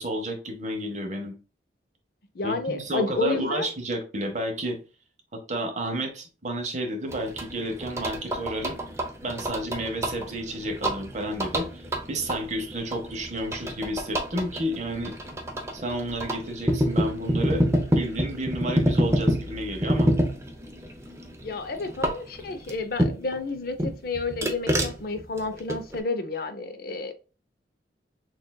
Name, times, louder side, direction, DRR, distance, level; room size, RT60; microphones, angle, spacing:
voice 1, 0.0-1.3 2.4-4.8 5.3-8.8 9.2-15.1 15.7-17.6 17.9-20.1, right 1 dB, 40° right, 0.9 m, -31 dB
voice 2, 2.3-3.7 21.4-27.1, left 3 dB, 55° left, 0.6 m, -30 dB
sound 1, 7.1-23.4 23.8-26.0, equal, 15° right, 0.6 m, -28 dB
6.3 x 2.4 x 2.3 m
head